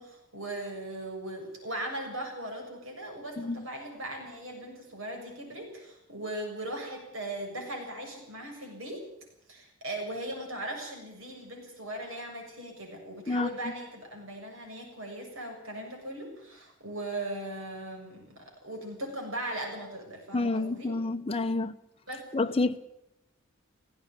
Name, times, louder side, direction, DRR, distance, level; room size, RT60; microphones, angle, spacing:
voice 1, 0.0-9.0 9.5-20.9 22.1-22.3, right 1 dB, 75° right, 7.1 m, -39 dB
voice 2, 3.4-3.7 13.3-13.5 20.3-21.7 22.3-22.8, left 2 dB, 25° left, 0.9 m, -28 dB
18.0 x 17.0 x 9.6 m
head